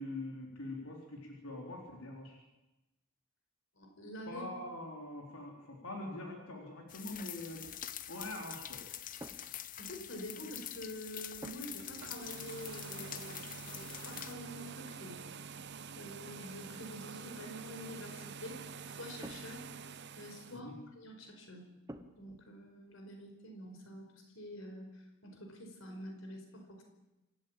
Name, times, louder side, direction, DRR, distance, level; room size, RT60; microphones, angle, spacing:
voice 1, 0.0-2.4 4.3-7.7 8.1-8.8 20.5-20.8, left 1 dB, 85° left, 0 dB, 4.0 m, -44 dB
voice 2, 3.8-4.4 9.8-15.3 15.9-19.7 20.2-21.7 22.2-24.1 24.3-26.8, equal, 65° left, 3 dB, 5.1 m, -47 dB
sound 1, 6.9-14.3, left 11 dB, 40° left, 0.8 m, -45 dB
sound 2, 9.2-10.4 11.4-12.0 12.2-12.5 13.4-14.6 15.6-15.7 16.1-16.9 18.7-19.9 21.9-22.4, right 1 dB, 15° right, 1.2 m, -52 dB
sound 3, 11.7-20.6, right 5 dB, 50° right, 0.8 m, -47 dB
26.5 x 14.0 x 8.9 m, 1.0 s
head